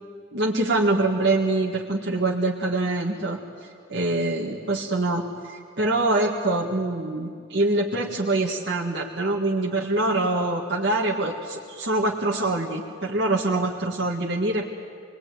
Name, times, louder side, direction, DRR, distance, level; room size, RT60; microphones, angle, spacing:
voice 1, 0.3-3.4 3.9-14.7, right 2 dB, 60° right, -3 dB, 1.8 m, -24 dB
26.0 x 20.5 x 9.5 m, 2.1 s
head